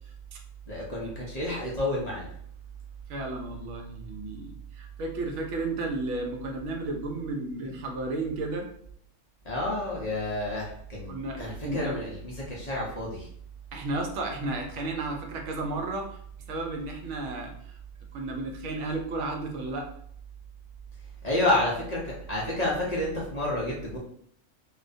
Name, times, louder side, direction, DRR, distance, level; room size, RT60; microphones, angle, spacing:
voice 1, 0.7-2.3 9.4-13.3 21.2-24.0, left 1 dB, 55° left, -4 dB, 0.4 m, -30 dB
voice 2, 3.1-8.7 11.1-11.4 11.7-12.0 13.7-16.2 16.5-17.5 18.1-19.9, right 2 dB, 70° right, 2 dB, 0.8 m, -33 dB
2.4 x 2.1 x 2.5 m, 0.65 s
omnidirectional pair, 1.3 m